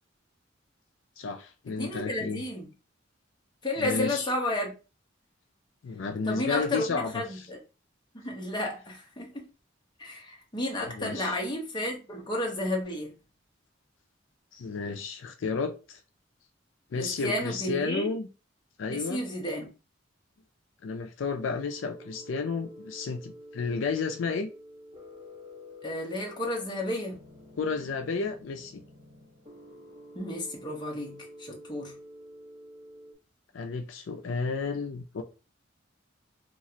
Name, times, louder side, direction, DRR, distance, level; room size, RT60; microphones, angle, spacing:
voice 1, 1.2-2.4 3.8-4.3 5.8-7.5 10.9-11.4 14.5-16.0 16.9-18.3 18.8-19.2 20.8-24.5 27.6-28.8 33.5-35.2, left 4 dB, 75° left, 0.4 m, -32 dB
voice 2, 1.8-2.7 3.6-4.7 6.3-7.6 8.1-9.5 10.0-13.1 17.0-18.1 18.9-19.7 25.8-27.2 30.1-31.9, left 1 dB, 25° left, 0.8 m, -32 dB
sound 1, 21.6-33.1, left 1 dB, 25° right, 1.0 m, -49 dB
2.9 x 2.4 x 2.7 m
head